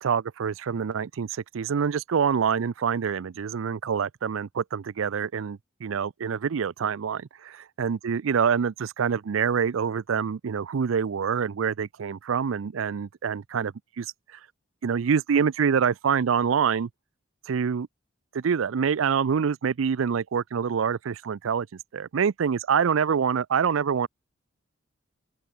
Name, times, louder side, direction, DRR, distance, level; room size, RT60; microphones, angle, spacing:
voice 1, 0.0-14.4 14.8-16.9 17.5-17.9 18.3-21.7 21.9-24.1, right 6 dB, 80° right, 0.4 m, -26 dB
open air
head